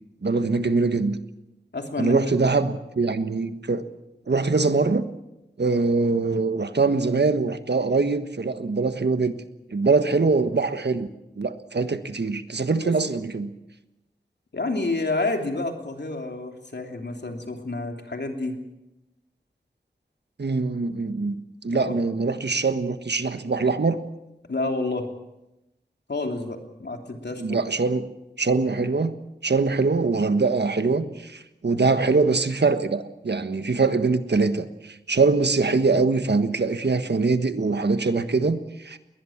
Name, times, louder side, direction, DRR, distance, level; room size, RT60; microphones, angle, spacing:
voice 1, 0.2-1.2 2.0-3.9 4.3-5.0 5.6-9.4 9.7-11.1 11.4-13.5 20.4-21.3 21.6-24.0 27.4-28.1 28.4-29.1 29.4-39.0, right 4 dB, 70° right, 10 dB, 1.4 m, -23 dB
voice 2, 1.7-2.5 12.8-12.9 14.5-18.5 21.7-21.9 24.5-25.1 26.1-27.6, left 2 dB, 70° left, 3 dB, 3.2 m, -29 dB
21.5 x 19.5 x 7.3 m, 0.94 s
wide cardioid pair, 60°, 18 cm